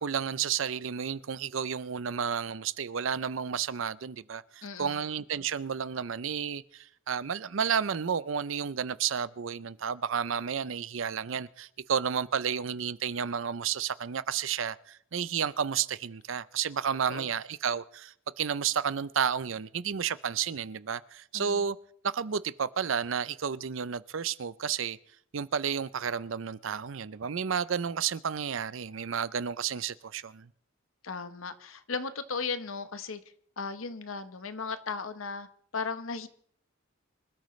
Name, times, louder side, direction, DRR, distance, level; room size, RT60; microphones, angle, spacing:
voice 1, 0.0-21.8 22.0-25.0 25.3-30.5, right 7 dB, 70° right, 0.6 m, -31 dB
voice 2, 4.6-5.0 17.1-17.3 21.3-21.6 31.0-33.2 33.6-35.5 35.7-36.3, left 4 dB, 80° left, 1.1 m, -36 dB
25.5 x 13.0 x 3.2 m
head